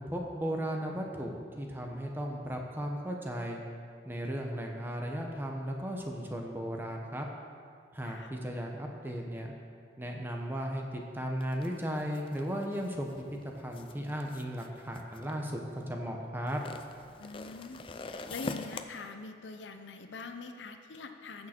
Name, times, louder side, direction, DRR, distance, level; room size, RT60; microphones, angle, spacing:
voice 1, 0.1-3.6 4.1-7.3 7.9-9.5 10.0-15.6 15.9-16.6, equal, 10° right, 1 dB, 0.8 m, -36 dB
sound 1, 11.4-15.8 16.5-18.8, left 3 dB, 30° left, 0.4 m, -44 dB
voice 2, 17.2-21.5, left 3 dB, 85° left, 7 dB, 0.7 m, -44 dB
15.0 x 6.5 x 4.4 m, 2.2 s
head